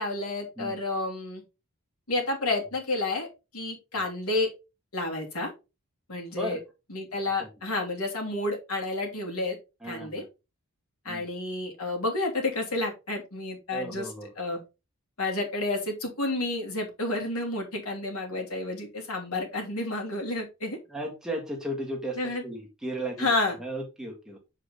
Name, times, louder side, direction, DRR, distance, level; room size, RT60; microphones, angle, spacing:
voice 1, 0.0-1.4 2.1-3.3 3.5-4.5 4.9-5.5 6.1-6.6 6.9-9.6 9.8-10.2 11.0-14.6 15.2-20.8 22.2-22.4 23.2-23.6, left 2 dB, 80° left, 1 dB, 2.9 m, -30 dB
voice 2, 9.8-10.2 11.1-11.2 13.7-14.3 20.9-22.2 22.4-23.3 23.6-24.4, right 1 dB, 5° right, -1 dB, 1.8 m, -35 dB
7.6 x 5.0 x 3.9 m, 0.27 s
head